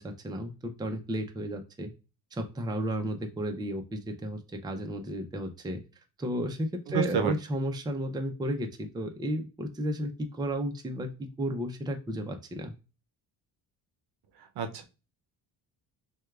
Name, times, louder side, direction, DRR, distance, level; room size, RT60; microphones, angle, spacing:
voice 1, 0.0-1.9 2.3-5.8 6.2-12.7, equal, 10° right, 4 dB, 0.5 m, -33 dB
voice 2, 6.9-7.3 14.4-14.8, right 6 dB, 65° right, 7 dB, 0.7 m, -29 dB
6.2 x 2.3 x 2.3 m, 0.31 s
cardioid pair, 115°, 41 cm